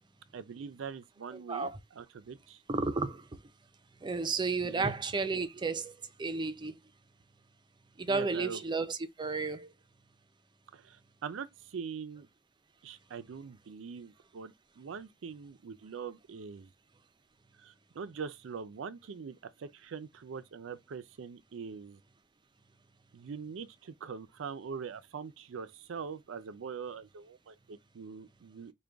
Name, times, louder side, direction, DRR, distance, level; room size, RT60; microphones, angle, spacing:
voice 1, 0.3-1.7 2.0-2.6 4.6-5.0 8.1-8.6 10.7-12.3 12.8-16.7 17.6-22.0 23.1-28.7, right 6 dB, 80° right, 0.4 m, -43 dB
voice 2, 1.3-1.8 2.7-3.3 4.0-6.7 8.0-9.7, right 4 dB, 25° right, 0.4 m, -33 dB
5.0 x 2.2 x 3.4 m
head